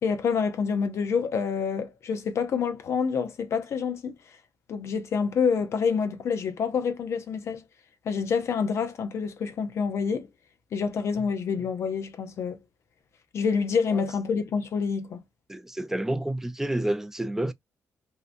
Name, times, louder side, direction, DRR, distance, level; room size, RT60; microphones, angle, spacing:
voice 1, 0.0-4.1 4.7-7.6 8.1-10.3 10.7-12.6 13.3-15.2, left 6 dB, 65° left, 0.5 m, -27 dB
voice 2, 15.5-17.5, right 1 dB, 10° right, 0.3 m, -29 dB
2.6 x 2.1 x 2.4 m
cardioid pair, 80°, 5 cm